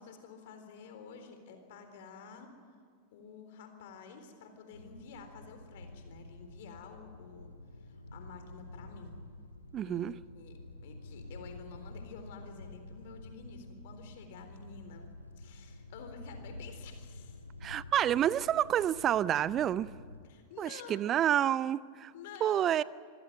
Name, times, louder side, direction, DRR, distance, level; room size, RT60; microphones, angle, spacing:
voice 1, 0.0-2.5 3.1-7.5 7.8-9.2 9.9-15.1 15.4-17.4 20.2-21.1 22.1-22.7, left 5 dB, 55° left, 3.8 m, -50 dB
sound 1, 4.7-20.2, left 2 dB, 85° left, 1.5 m, -49 dB
voice 2, 9.7-10.1 17.6-19.9 20.6-22.1 22.4-22.8, right 10 dB, 30° right, 0.5 m, -29 dB
26.0 x 16.0 x 9.1 m
figure-of-eight pair, 90°, 0 cm